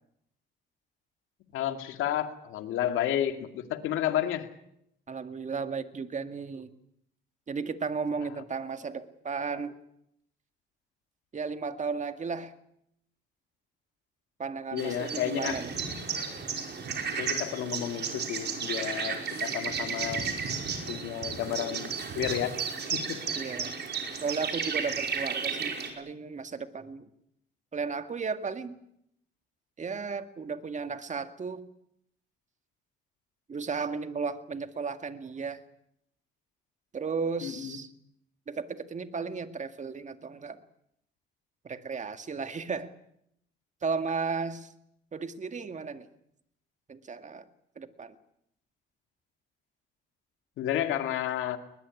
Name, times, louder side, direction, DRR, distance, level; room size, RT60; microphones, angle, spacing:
voice 1, 1.5-4.5 14.7-15.6 17.2-20.3 20.9-22.5 22.9-23.2 37.4-37.8 50.6-51.6, left 11 dB, 90° left, 8 dB, 2.4 m, -31 dB
voice 2, 5.1-6.7 7.5-9.7 11.3-12.5 14.4-15.7 16.4-16.5 23.4-23.7 24.2-27.1 27.7-28.8 29.8-31.6 33.5-35.6 36.9-37.9 38.5-40.6 41.6-42.9 43.8-44.7 45.1-46.1 46.9-47.5 47.8-48.2, right 5 dB, 35° right, 9 dB, 2.0 m, -34 dB
sound 1, 14.8-25.9, right 6 dB, 60° right, 5.3 m, -33 dB
21.0 x 21.0 x 9.8 m, 0.76 s
cardioid pair, 90°, 20 cm